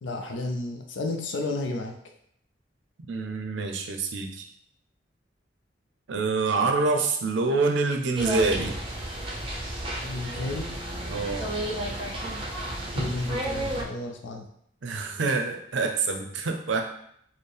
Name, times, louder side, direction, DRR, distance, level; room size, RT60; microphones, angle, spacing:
voice 1, 0.0-1.9 10.0-10.7 12.9-14.5, left 2 dB, 80° left, 3 dB, 0.4 m, -32 dB
voice 2, 3.0-4.4 6.1-8.8 11.1-11.5 14.8-16.8, right 3 dB, 80° right, 4 dB, 0.5 m, -26 dB
sound 1, 8.2-13.8, right 1 dB, 30° right, 0.6 m, -32 dB
4.3 x 2.0 x 3.3 m, 0.70 s
head